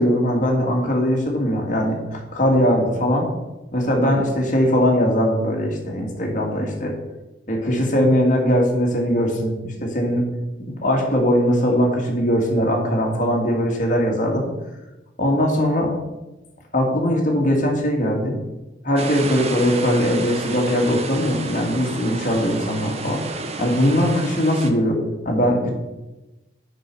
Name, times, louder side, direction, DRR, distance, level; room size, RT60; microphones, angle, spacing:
voice 1, 0.0-3.3 3.7-6.9 7.5-10.3 10.6-14.5 15.2-15.9 16.7-18.4 18.8-23.2 23.6-25.7, equal, 40° left, 0 dB, 1.9 m, -20 dB
sound 1, 19.0-24.7, right 3 dB, 35° right, 0.7 m, -31 dB
7.8 x 5.7 x 6.0 m, 1.0 s
head